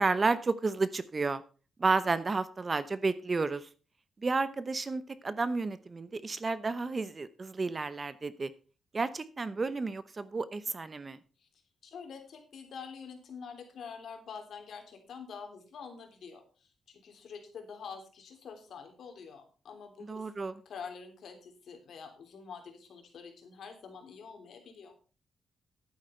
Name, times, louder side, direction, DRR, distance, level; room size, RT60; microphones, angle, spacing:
voice 1, 0.0-1.4 1.8-3.7 4.2-8.5 8.9-11.2 20.1-20.6, right 3 dB, 30° right, 14 dB, 0.8 m, -31 dB
voice 2, 11.8-20.3 20.6-24.9, left 6 dB, 65° left, 4 dB, 3.4 m, -46 dB
11.5 x 9.3 x 4.4 m, 0.36 s
wide cardioid pair, 140°, 0 cm